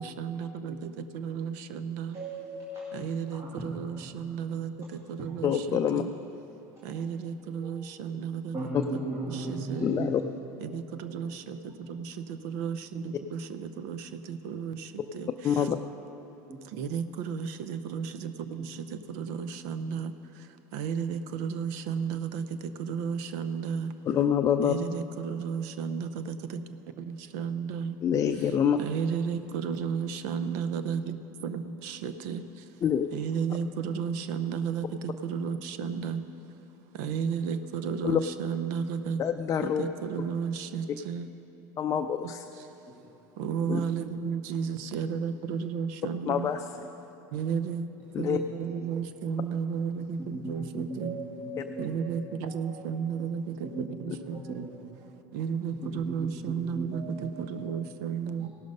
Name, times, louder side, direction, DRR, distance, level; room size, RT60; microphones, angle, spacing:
voice 1, 0.0-2.2 2.9-6.1 6.8-8.6 8.9-9.0 9.3-9.8 10.6-15.7 16.6-23.9 24.6-26.7 27.0-28.0 28.8-32.7 33.1-36.3 36.9-39.2 39.6-41.3 42.2-42.7 43.4-46.5 47.3-47.9 48.2-51.2 51.8-54.7 55.3-58.5, right 6 dB, 70° right, 0.6 m, -33 dB
voice 2, 2.1-2.9 3.3-3.6 6.8-7.1 7.6-7.7 8.5-10.1 16.5-16.6 50.2-52.1 52.5-52.8 53.6-53.9 54.3-54.7 55.8-57.3 58.4-58.5, right 2 dB, 30° right, 1.8 m, -37 dB
voice 3, 5.4-6.0 9.8-10.2 15.4-15.8 24.1-24.7 28.0-28.8 32.8-33.1 38.0-38.2 39.2-39.8 41.8-42.4 43.7-43.8 46.3-46.9 48.1-48.4 54.1-54.2, left 8 dB, 35° left, 0.4 m, -26 dB
17.0 x 6.4 x 5.3 m
supercardioid pair, 95°, 9 cm